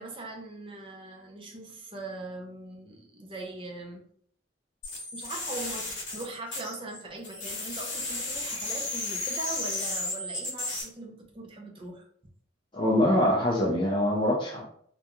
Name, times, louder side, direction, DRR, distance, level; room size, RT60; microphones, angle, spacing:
voice 1, 0.0-4.0 5.1-12.1, right 2 dB, 25° right, 0 dB, 0.5 m, -41 dB
sound 1, 4.8-7.0 7.2-10.8, left 2 dB, 75° left, 0.9 m, -34 dB
voice 2, 12.7-14.6, left 1 dB, 25° left, -4 dB, 0.4 m, -24 dB
2.4 x 2.2 x 2.9 m, 0.62 s
head